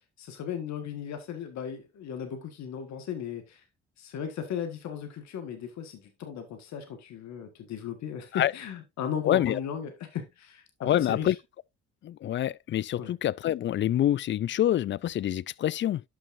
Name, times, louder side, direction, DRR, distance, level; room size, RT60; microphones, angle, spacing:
voice 1, 0.2-3.6 4.0-11.4 13.0-13.1, left 8 dB, 65° left, 1.7 m, -36 dB
voice 2, 9.2-9.6 10.8-11.3 12.0-16.0, left 12 dB, 40° left, 0.4 m, -26 dB
11.0 x 6.2 x 2.6 m
supercardioid pair, 65°, 30 cm